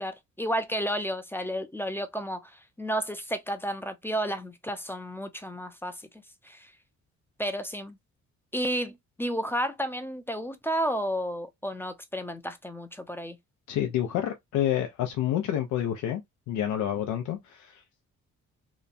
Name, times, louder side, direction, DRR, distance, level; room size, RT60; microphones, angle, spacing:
voice 1, 0.0-6.0 6.4-6.7 7.4-8.0 8.5-13.4, equal, 5° left, 0.5 m, -32 dB
voice 2, 13.7-16.2 16.5-17.8, left 11 dB, 85° left, 0.6 m, -28 dB
2.9 x 2.2 x 2.5 m
cardioid pair, 90°, 30 cm